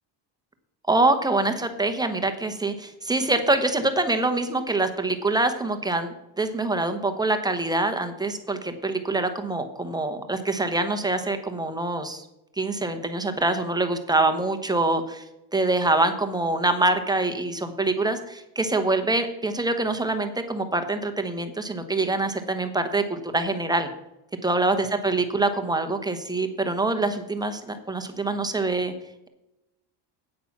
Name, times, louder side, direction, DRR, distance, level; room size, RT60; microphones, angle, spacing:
voice 1, 0.9-12.2 12.6-15.2 15.5-23.9 24.4-28.9, right 2 dB, 10° right, 7 dB, 0.9 m, -25 dB
8.8 x 8.3 x 5.9 m, 0.91 s
cardioid pair, 150°, 46 cm